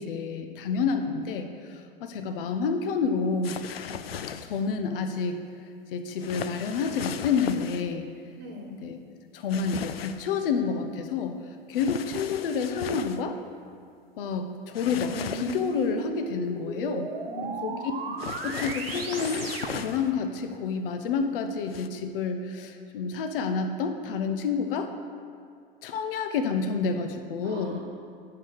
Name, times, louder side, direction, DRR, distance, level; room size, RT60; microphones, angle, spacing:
voice 1, 0.0-3.6 4.4-5.4 5.9-8.1 8.7-9.0 9.3-11.4 11.7-13.4 14.2-17.1 17.6-17.8 18.4-19.5 19.7-24.9 25.8-27.8, left 5 dB, 70° left, 7 dB, 0.8 m, -29 dB
sound 1, 3.4-4.6 6.2-7.9 9.5-10.3 11.7-13.2 14.7-15.9 18.2-20.1 21.7-21.9, left 8 dB, 90° left, 0.5 m, -37 dB
voice 2, 8.4-8.8 17.3-18.2 27.4-27.8, equal, 35° right, 1 dB, 1.3 m, -41 dB
sound 2, 15.1-20.1, right 4 dB, 80° right, 1.1 m, -36 dB
9.7 x 4.9 x 6.3 m, 2.2 s
hypercardioid pair, 95°, 29 cm